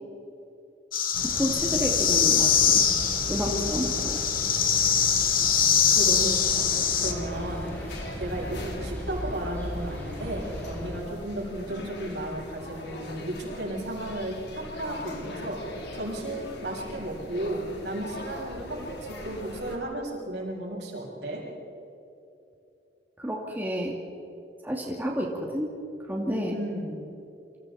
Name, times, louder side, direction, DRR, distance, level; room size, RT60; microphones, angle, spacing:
sound 1, 0.9-7.1, left 7 dB, 50° left, 2.1 m, -23 dB
sound 2, 1.1-11.0, equal, 10° left, 7.3 m, -37 dB
voice 1, 1.2-2.8 3.3-4.2 23.2-23.9 24.6-25.7 26.1-26.6, equal, 10° right, -1 dB, 2.4 m, -30 dB
voice 2, 5.9-7.9 8.2-21.4 26.5-27.0, right 1 dB, 70° right, -2 dB, 7.1 m, -34 dB
sound 3, 7.0-19.8, left 1 dB, 75° left, 3.4 m, -41 dB
29.5 x 26.0 x 4.3 m, 2.8 s
head